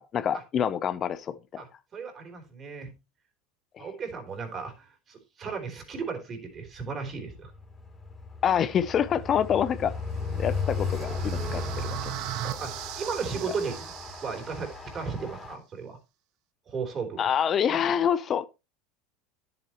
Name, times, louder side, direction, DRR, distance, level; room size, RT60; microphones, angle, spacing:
voice 1, 0.0-1.3 3.8-3.9 8.4-9.9 10.4-12.0 12.4-12.6 17.2-18.5, left 8 dB, 35° left, 0.6 m, -26 dB
voice 2, 1.6-2.9 3.8-7.5 10.2-10.5 11.3-11.7 12.6-13.9 14.2-16.0 16.7-17.3, right 5 dB, 35° right, 3.6 m, -35 dB
Train, 7.1-15.6, left 4 dB, 15° left, 2.8 m, -35 dB
sound 1, 9.9-15.0, right 14 dB, 60° right, 0.8 m, -39 dB
10.5 x 7.9 x 3.0 m
hypercardioid pair, 100°, 0 cm